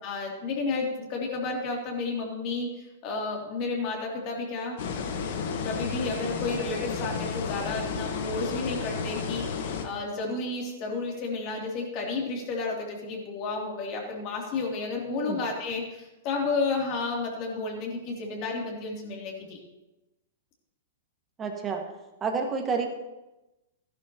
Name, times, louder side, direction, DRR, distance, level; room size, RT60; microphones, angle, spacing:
voice 1, 0.0-2.7 3.0-4.8 5.6-19.6, left 3 dB, 45° left, 0 dB, 2.8 m, -32 dB
sound 1, 4.8-9.8, left 5 dB, 65° left, 1.3 m, -32 dB
voice 2, 21.4-21.8 22.2-22.8, right 5 dB, 20° right, 3 dB, 1.7 m, -29 dB
13.5 x 11.0 x 2.9 m, 1.0 s
hypercardioid pair, 130°, 0 cm